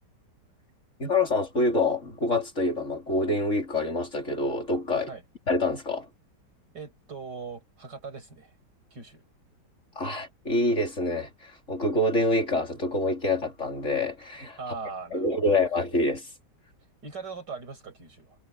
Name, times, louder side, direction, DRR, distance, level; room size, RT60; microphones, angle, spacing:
voice 1, 1.0-5.1 5.5-6.1 10.0-14.6 15.1-16.3, left 2 dB, 40° left, 4.3 m, -26 dB
voice 2, 6.7-8.5 8.9-9.2 14.6-15.6 17.0-18.4, right 4 dB, 70° right, 6.8 m, -40 dB
omnidirectional pair, 1.9 m